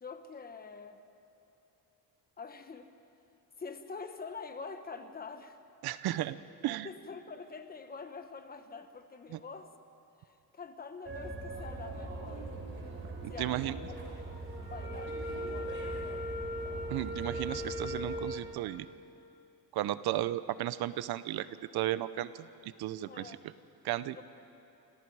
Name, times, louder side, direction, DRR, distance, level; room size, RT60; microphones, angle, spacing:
voice 1, 0.0-1.0 2.4-2.9 3.6-5.6 6.8-9.7 10.2-12.6 13.3-14.0 14.3-16.3 23.1-23.4 24.1-24.2, left 4 dB, 25° left, 8 dB, 1.2 m, -46 dB
voice 2, 5.8-6.4 6.6-6.9 9.3-9.4 13.2-13.8 16.9-18.9 19.7-21.5 21.7-23.4 23.8-24.2, right 14 dB, 80° right, 14 dB, 0.8 m, -34 dB
sound 1, 11.1-18.4, right 1 dB, 30° right, 3.9 m, -39 dB
28.5 x 27.0 x 4.8 m, 2.8 s
cardioid pair, 155°, 38 cm